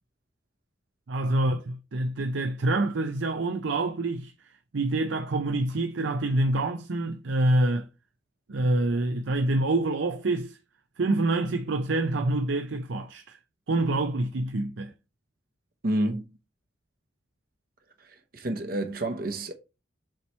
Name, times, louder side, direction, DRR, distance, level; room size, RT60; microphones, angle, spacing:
voice 1, 1.1-4.3 4.7-7.9 8.5-10.6 11.0-13.4 13.7-14.9, right 2 dB, 75° right, 0.6 m, -26 dB
voice 2, 15.8-16.2 18.0-19.5, right 1 dB, 50° right, 0.8 m, -29 dB
7.4 x 3.0 x 4.3 m
head